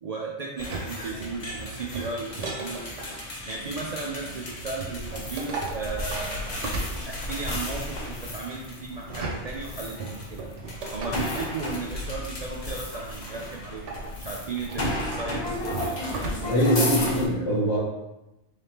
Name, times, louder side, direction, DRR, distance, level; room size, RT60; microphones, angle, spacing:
voice 1, 0.0-2.9 3.5-6.6 7.1-10.5 10.9-16.9, right 4 dB, 65° right, -2 dB, 0.4 m, -35 dB
sound 1, 0.6-17.3, left 1 dB, 45° left, 0.8 m, -34 dB
sound 2, 0.6-3.2 4.8-7.5 8.9-11.6 13.6-16.7 17.1-17.2, right 2 dB, 80° right, 1.0 m, -36 dB
voice 2, 16.5-17.8, equal, 80° left, -7 dB, 1.4 m, -23 dB
3.8 x 3.4 x 2.8 m, 0.98 s
omnidirectional pair, 1.2 m